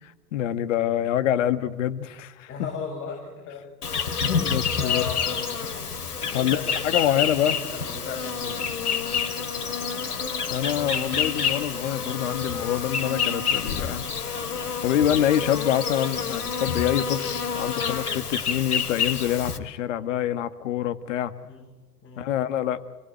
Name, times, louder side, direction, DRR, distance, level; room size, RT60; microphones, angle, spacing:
voice 1, 0.3-2.5 4.4-5.0 6.3-6.6 6.8-7.6 10.5-14.0 14.8-21.3 22.2-22.8, left 11 dB, 50° left, 12 dB, 1.8 m, -26 dB
voice 2, 2.5-3.6 4.8-5.4 6.3-8.7 21.4-21.7 22.0-22.3, left 6 dB, 25° left, -1 dB, 6.9 m, -36 dB
Insect, 3.8-19.6, left 6 dB, 70° left, 2.7 m, -28 dB
28.5 x 20.0 x 9.2 m, 1.2 s
figure-of-eight pair, 100°, 47 cm